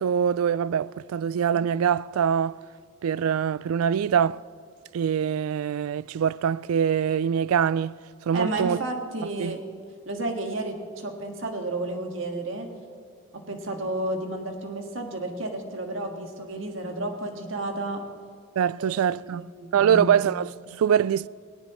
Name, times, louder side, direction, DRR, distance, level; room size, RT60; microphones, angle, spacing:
voice 1, 0.0-2.6 3.0-4.4 4.9-7.9 8.3-8.8 9.4-9.6 18.6-21.3, right 8 dB, 80° right, 0.3 m, -24 dB
voice 2, 8.3-9.6 10.0-12.7 13.3-18.0 18.8-20.1, right 2 dB, 65° right, 1.7 m, -32 dB
19.0 x 17.5 x 3.1 m
head